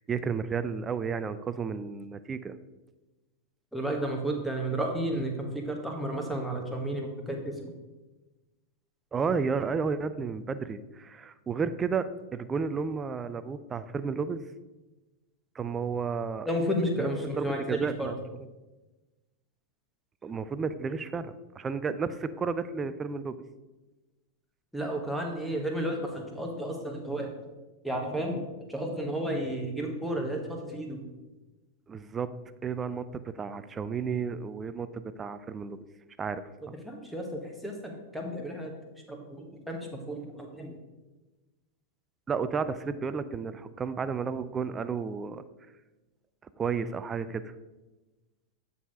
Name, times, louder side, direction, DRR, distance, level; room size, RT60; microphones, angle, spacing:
voice 1, 0.0-2.6 9.1-14.4 15.6-16.5 17.0-17.1 17.4-18.1 20.2-23.4 31.9-32.3 32.6-35.8 36.2-36.7 42.3-45.4 46.6-47.5, right 5 dB, 20° right, 13 dB, 0.4 m, -32 dB
voice 2, 3.7-7.7 16.4-18.1 24.7-27.3 27.8-31.1 36.8-38.8 39.1-40.8, right 1 dB, ahead, 0 dB, 1.3 m, -32 dB
9.1 x 4.1 x 4.9 m, 1.1 s
figure-of-eight pair, 90°, 0 cm